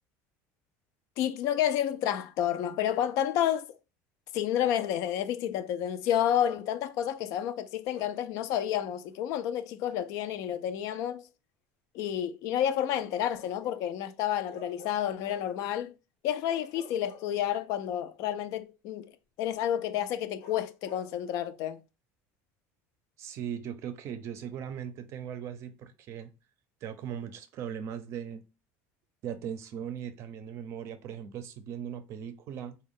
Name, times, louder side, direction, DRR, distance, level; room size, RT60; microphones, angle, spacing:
voice 1, 1.2-3.7 4.3-11.2 11.9-15.9 16.2-19.1 19.4-21.8, left 10 dB, 60° left, 0.4 m, -30 dB
Bark, 4.5-5.3 6.1-6.8 7.9-8.3 9.9-10.1 12.9-13.9 14.5-15.6 16.5-17.7 20.4-21.1, left 4 dB, 85° left, 0.8 m, -50 dB
voice 2, 23.2-26.3 26.8-28.4 29.2-32.8, right 8 dB, 45° right, 0.5 m, -39 dB
3.5 x 2.2 x 3.6 m
cardioid pair, 155°, 7 cm